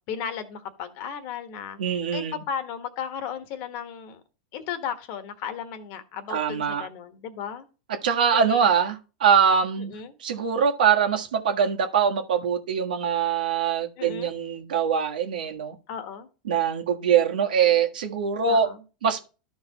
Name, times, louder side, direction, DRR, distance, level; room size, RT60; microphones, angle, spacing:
voice 1, 0.1-4.2 4.5-7.7 8.3-8.7 9.8-10.1 14.0-14.3 15.9-16.3 18.5-18.8, left 8 dB, 50° left, 1.3 m, -35 dB
voice 2, 1.8-2.4 6.3-6.9 8.0-9.9 10.2-15.7 16.4-18.7 19.0-19.3, right 7 dB, 85° right, 1.5 m, -23 dB
13.0 x 4.7 x 3.0 m
supercardioid pair, 130°, 5 cm